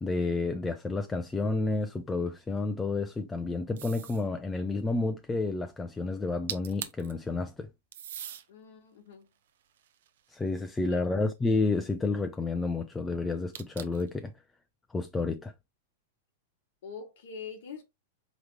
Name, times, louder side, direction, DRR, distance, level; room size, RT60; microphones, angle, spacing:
voice 1, 0.0-7.7 10.3-14.3 14.9-15.5, left 3 dB, 10° left, 0.5 m, -30 dB
sound 1, 3.8-4.3 6.2-6.3 6.5-7.1 7.9-8.5 9.1-10.6 13.5-14.1, right 10 dB, 70° right, 0.7 m, -41 dB
voice 2, 8.5-9.3 10.8-11.2 16.8-17.8, left 6 dB, 65° left, 1.1 m, -44 dB
4.9 x 3.1 x 3.2 m
hypercardioid pair, 105°, 0 cm